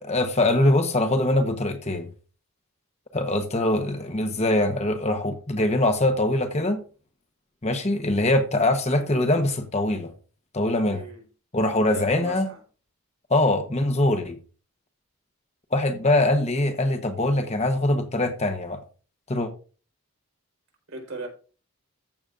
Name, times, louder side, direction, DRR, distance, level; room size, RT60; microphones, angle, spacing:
voice 1, 0.0-2.1 3.1-6.8 7.6-10.1 10.5-11.0 11.5-12.5 13.3-14.4 15.7-18.8 19.3-19.5, left 1 dB, 30° left, 1.0 m, -23 dB
voice 2, 10.9-11.2 11.9-12.6 20.9-21.3, right 2 dB, 60° right, 4.1 m, -37 dB
14.5 x 6.8 x 2.5 m
head